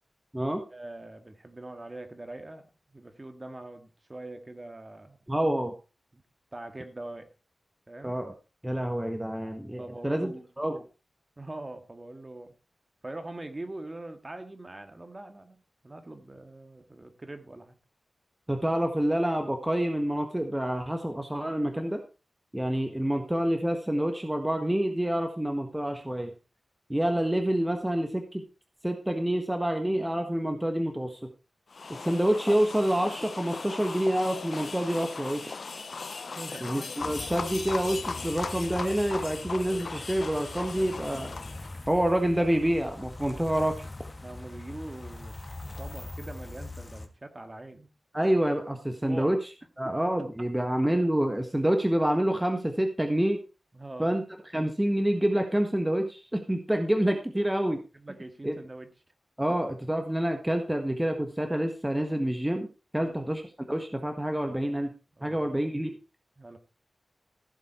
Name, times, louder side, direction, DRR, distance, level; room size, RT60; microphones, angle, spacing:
voice 1, 0.7-2.6 2.9-5.2 6.1-6.2 6.5-7.3 7.9-8.2 9.8-10.5 11.4-12.5 13.0-17.8 35.9-36.9 44.2-45.3 45.8-47.9 49.0-49.4 53.7-54.1 57.9-58.9 62.9-63.2 65.2-65.5 66.4-66.6, right 2 dB, 25° right, 7 dB, 1.9 m, -43 dB
voice 2, 5.3-5.7 8.0-8.3 8.6-10.3 10.6-10.8 18.5-22.0 22.5-26.3 26.9-28.4 28.8-31.3 31.9-35.6 36.6-41.3 41.9-43.7 48.1-49.4 49.8-53.4 54.0-54.2 54.5-57.8 58.4-58.6 59.4-62.7 62.9-63.4 63.7-64.9 65.2-65.9, right 1 dB, 10° right, 5 dB, 1.5 m, -27 dB
sound 1, 31.7-41.8, left 4 dB, 65° left, 0.7 m, -38 dB
sound 2, 37.0-47.1, left 2 dB, 30° left, 2.1 m, -42 dB
15.5 x 7.7 x 4.4 m, 0.32 s
wide cardioid pair, 95°, 0 cm